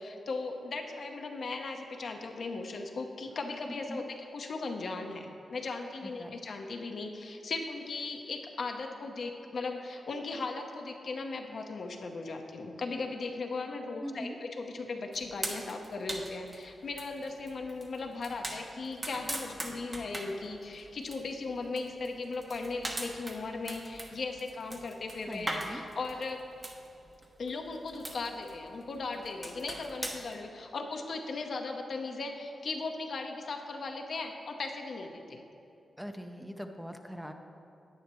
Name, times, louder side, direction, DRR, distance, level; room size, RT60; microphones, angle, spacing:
voice 1, 0.0-26.4 27.4-35.4, left 3 dB, 65° left, 3 dB, 0.8 m, -37 dB
voice 2, 6.0-6.4 14.0-14.4 25.3-25.8 36.0-37.3, equal, 5° right, 5 dB, 0.6 m, -41 dB
sound 1, 15.1-30.4, right 1 dB, 35° right, 1.1 m, -42 dB
10.5 x 8.9 x 3.1 m, 2.8 s
cardioid pair, 60°, 0 cm